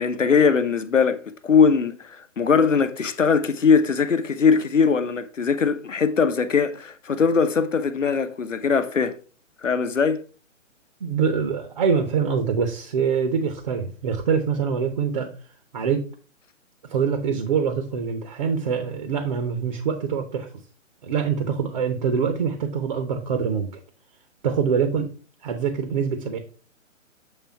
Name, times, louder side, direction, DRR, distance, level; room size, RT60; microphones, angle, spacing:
voice 1, 0.0-2.0 2.4-9.2 9.6-10.2, left 5 dB, 75° left, 0.9 m, -20 dB
voice 2, 11.0-15.3 15.7-16.1 16.9-20.5 21.0-23.7 24.4-25.1 25.4-26.4, right 6 dB, 35° right, 0.8 m, -24 dB
7.5 x 3.4 x 4.6 m
figure-of-eight pair, 130°, 39 cm